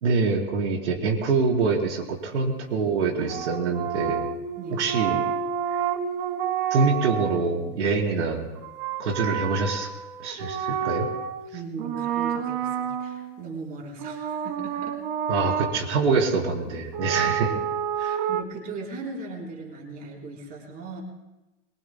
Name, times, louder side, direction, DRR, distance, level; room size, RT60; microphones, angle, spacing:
voice 1, 0.0-4.3 4.8-5.3 5.7-5.8 6.7-8.5 9.0-9.9 10.2-11.1 15.3-17.5 18.0-18.2, right 4 dB, 90° right, 0 dB, 4.0 m, -25 dB
sound 1, 3.2-7.5 8.6-11.5 11.8-13.4 14.0-15.9 16.9-18.4, right 8 dB, 50° right, 1.2 m, -29 dB
voice 2, 11.5-15.0 17.5-17.6 18.0-21.0, right 3 dB, 25° right, -1 dB, 3.8 m, -38 dB
25.0 x 22.5 x 2.2 m, 1.0 s
supercardioid pair, 160°, 34 cm